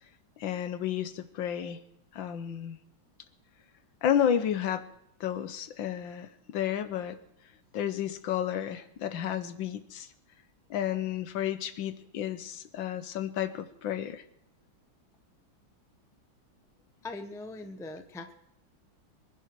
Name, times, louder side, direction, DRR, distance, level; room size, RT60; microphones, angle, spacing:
voice 1, 0.4-1.8 2.1-2.8 4.0-4.8 5.2-7.2 7.7-10.1 10.7-14.2, left 9 dB, 75° left, 11 dB, 1.6 m, -31 dB
voice 2, 17.0-18.3, left 2 dB, 5° left, 8 dB, 0.6 m, -41 dB
24.0 x 10.5 x 4.7 m, 0.78 s
omnidirectional pair, 2.2 m